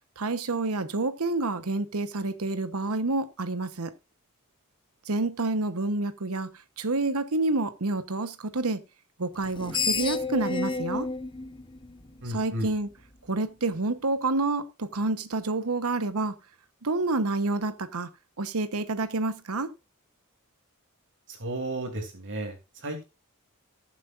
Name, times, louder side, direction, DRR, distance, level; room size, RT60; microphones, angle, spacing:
voice 1, 0.2-3.9 5.0-6.5 6.8-8.8 9.2-11.1 12.2-12.9 13.3-16.3 16.8-18.1 18.4-19.7, right 2 dB, 75° right, 1.1 m, -28 dB
Screech, 9.4-12.6, left 4 dB, 20° left, 0.9 m, -31 dB
voice 2, 12.2-12.7 21.3-23.1, right 1 dB, 60° right, 2.9 m, -33 dB
19.0 x 7.6 x 2.5 m
head